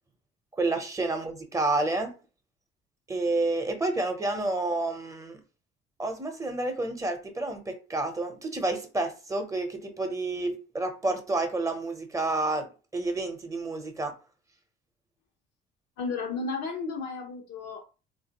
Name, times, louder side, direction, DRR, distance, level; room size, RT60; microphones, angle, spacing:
voice 1, 0.6-2.1 3.1-5.4 6.0-12.7 12.9-14.1, right 2 dB, 20° right, 0.7 m, -29 dB
voice 2, 16.0-18.1, left 4 dB, 90° left, 1.0 m, -34 dB
3.5 x 2.5 x 2.9 m
cardioid pair, 110°, 17 cm